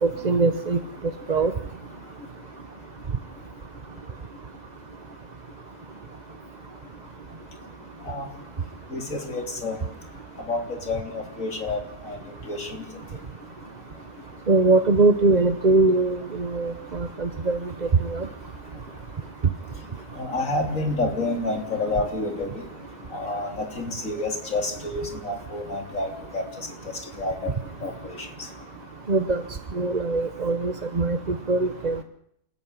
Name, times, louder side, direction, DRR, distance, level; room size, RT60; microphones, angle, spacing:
voice 1, 0.0-0.8 1.3-1.5 14.5-17.6 18.0-18.3 29.1-29.4 29.7-32.0, right 3 dB, 30° right, 10 dB, 0.9 m, -22 dB
voice 2, 8.9-9.8 10.5-11.8 12.1-12.2 12.5-12.8 20.2-22.5 23.1-26.1 26.3-26.4 27.2-27.5 27.8-28.1, left 2 dB, 50° left, 5 dB, 3.8 m, -28 dB
29.5 x 14.0 x 9.9 m, 0.73 s
omnidirectional pair, 1.8 m